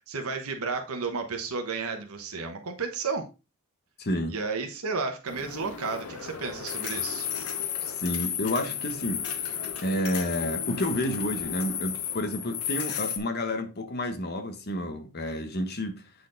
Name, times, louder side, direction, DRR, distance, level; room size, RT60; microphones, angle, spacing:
voice 1, 0.0-3.3 4.3-7.3, right 4 dB, 85° right, 1.1 m, -32 dB
voice 2, 4.0-4.3 7.8-9.2 9.8-16.1, left 1 dB, 45° left, 1.1 m, -30 dB
sound 1, 5.3-13.2, left 8 dB, 90° left, 1.1 m, -33 dB
8.2 x 4.2 x 3.9 m
head